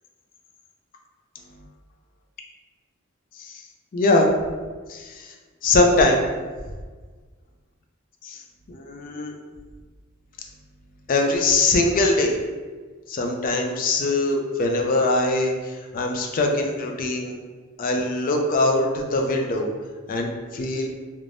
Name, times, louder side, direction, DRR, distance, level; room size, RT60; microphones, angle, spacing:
voice 1, 3.9-4.3 4.9-5.3 5.6-6.2 8.2-8.4 8.7-9.3 11.1-12.4 13.1-17.4 17.8-19.7 20.1-20.9, left 2 dB, 40° left, 2 dB, 0.3 m, -22 dB
3.2 x 2.1 x 2.5 m, 1.4 s
head